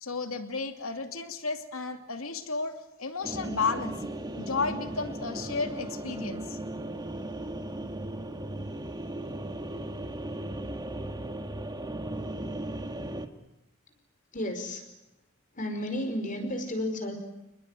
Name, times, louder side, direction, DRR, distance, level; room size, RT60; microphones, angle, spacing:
voice 1, 0.0-4.0 4.4-6.6, left 4 dB, 85° left, 6 dB, 2.6 m, -33 dB
sound 1, 3.2-13.3, right 1 dB, 20° right, 1.8 m, -36 dB
voice 2, 14.3-14.9 15.5-17.2, left 1 dB, 40° left, 6 dB, 5.1 m, -32 dB
29.5 x 20.5 x 9.3 m, 0.92 s
head